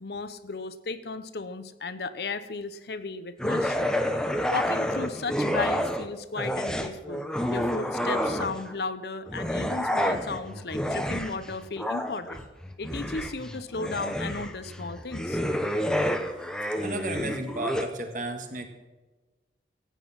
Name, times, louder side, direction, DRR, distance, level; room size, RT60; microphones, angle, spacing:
voice 1, 0.0-3.9 4.5-12.5 12.8-15.4, left 3 dB, 60° left, 12 dB, 0.8 m, -35 dB
sound 1, 3.4-6.1 6.4-8.7 9.3-17.9, equal, 5° left, 0.8 m, -29 dB
voice 2, 16.8-18.7, right 2 dB, 45° right, 5 dB, 1.7 m, -33 dB
14.5 x 9.2 x 5.9 m, 1.2 s
head